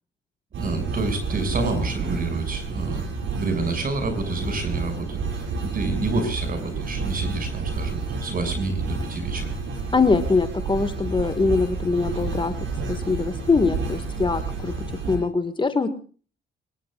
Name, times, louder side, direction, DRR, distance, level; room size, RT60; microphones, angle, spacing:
sound 1, 0.5-15.2, right 4 dB, 75° right, 7.1 m, -30 dB
voice 1, 0.6-9.5, right 3 dB, 45° right, 8 dB, 6.9 m, -28 dB
voice 2, 9.9-12.5 12.9-15.9, left 4 dB, 25° left, 9 dB, 2.0 m, -23 dB
25.0 x 21.0 x 2.5 m, 0.39 s
cardioid pair, 90°, 20 cm